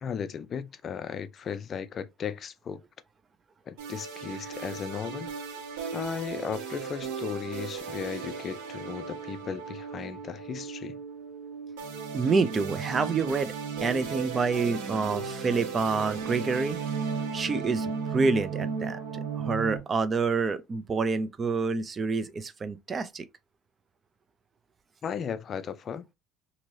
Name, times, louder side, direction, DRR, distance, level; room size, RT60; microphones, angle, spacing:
voice 1, 0.0-2.8 3.7-5.3 5.9-11.0 25.0-26.0, left 7 dB, 45° left, 0.4 m, -36 dB
sound 1, 3.8-19.8, right 6 dB, 80° right, 1.4 m, -35 dB
voice 2, 12.1-13.5 13.8-16.8 17.3-23.3, right 4 dB, 35° right, 0.5 m, -28 dB
2.9 x 2.7 x 2.6 m
supercardioid pair, 85°, 0 cm